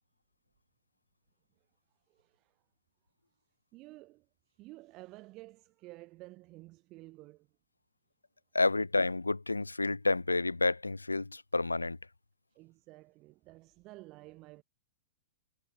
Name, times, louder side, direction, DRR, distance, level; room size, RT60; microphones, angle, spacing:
voice 1, 2.1-2.6 3.7-7.5 12.5-14.6, right 20 dB, 35° right, 5.1 m, -52 dB
voice 2, 8.5-12.0, left 3 dB, 80° left, 0.7 m, -29 dB
figure-of-eight pair, 105°, 0 cm